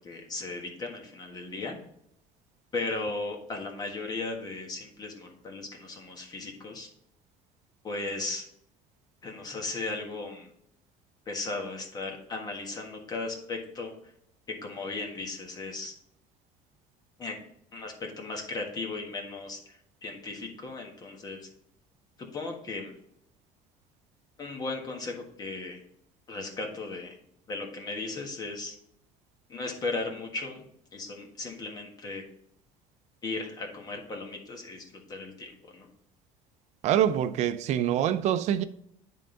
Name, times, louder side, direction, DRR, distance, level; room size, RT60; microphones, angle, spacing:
voice 1, 0.0-1.8 2.7-6.9 7.8-8.5 9.2-10.5 11.3-14.1 14.5-15.9 17.2-17.4 17.7-21.4 22.2-22.9 24.4-25.8 26.3-27.2 27.5-28.7 29.5-30.6 30.9-32.2 33.2-35.9, left 3 dB, 25° left, 1.5 m, -36 dB
voice 2, 36.8-38.6, right 10 dB, 55° right, 0.5 m, -25 dB
10.0 x 3.8 x 3.8 m
cardioid pair, 145°, 14 cm